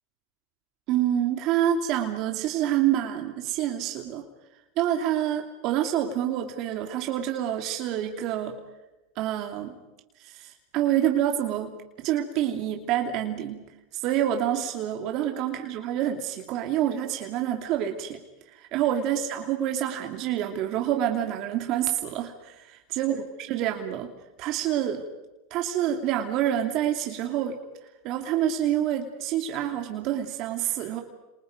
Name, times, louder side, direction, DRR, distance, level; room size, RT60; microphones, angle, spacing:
voice 1, 0.9-4.2 4.8-8.6 9.2-9.8 10.2-13.6 13.9-18.2 18.5-24.1 24.4-25.0 25.5-27.6 28.0-31.0, right 11 dB, 50° right, 4 dB, 2.7 m, -27 dB
29.5 x 28.0 x 5.3 m, 1.0 s
supercardioid pair, 135°, 0 cm